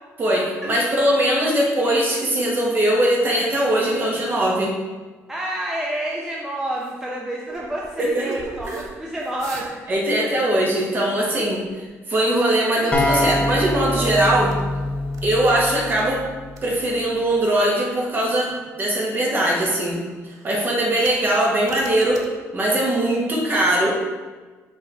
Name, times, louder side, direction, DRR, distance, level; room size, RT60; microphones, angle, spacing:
voice 1, 0.2-4.8 8.0-8.3 8.7-8.8 9.9-14.5 15.2-16.2 16.6-18.5 18.8-20.0 20.4-22.3 22.5-24.0, right 1 dB, 35° right, -2 dB, 1.5 m, -21 dB
voice 2, 5.3-9.8 10.2-10.4, right 1 dB, 10° right, -4 dB, 0.7 m, -29 dB
sound 1, 6.8-7.0 7.5-8.9 9.2-9.9 10.2-10.4 11.1-11.8 12.3-12.5 12.7-14.7 15.1-16.2 16.6-17.8 18.2-19.0 19.4-20.5 21.0-21.4 21.7-22.3, right 4 dB, 75° right, 0.7 m, -36 dB
sound 2, 12.9-16.6, left 1 dB, 20° left, 1.0 m, -25 dB
5.6 x 4.1 x 4.7 m, 1.3 s
cardioid pair, 120°, 6 cm